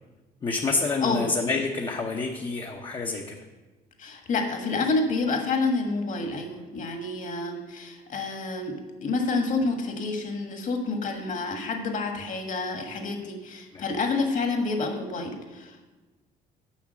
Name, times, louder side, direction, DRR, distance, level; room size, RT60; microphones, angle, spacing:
voice 1, 0.4-3.4 13.7-13.8, left 3 dB, 30° left, 1 dB, 0.8 m, -28 dB
voice 2, 4.0-16.0, left 3 dB, 50° left, 4 dB, 1.6 m, -28 dB
7.2 x 5.8 x 7.4 m, 1.2 s
cardioid pair, 110°, 17 cm